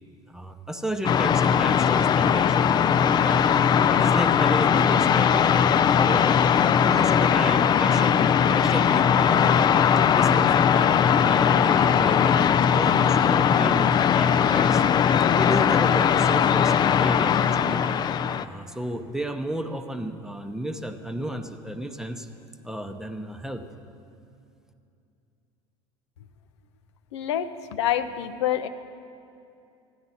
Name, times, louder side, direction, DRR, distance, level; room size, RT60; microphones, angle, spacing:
voice 1, 0.3-3.5 3.9-5.7 6.0-6.4 6.8-9.7 10.1-10.7 11.0-14.9 15.3-17.9 18.4-22.3 22.6-23.6, equal, 5° right, 7 dB, 0.7 m, -33 dB
sound 1, 1.0-18.4, left 8 dB, 30° left, 0.3 m, -20 dB
voice 2, 27.1-28.7, left 11 dB, 90° left, 9 dB, 0.6 m, -27 dB
14.5 x 9.5 x 4.1 m, 2.6 s
supercardioid pair, 95°, 14 cm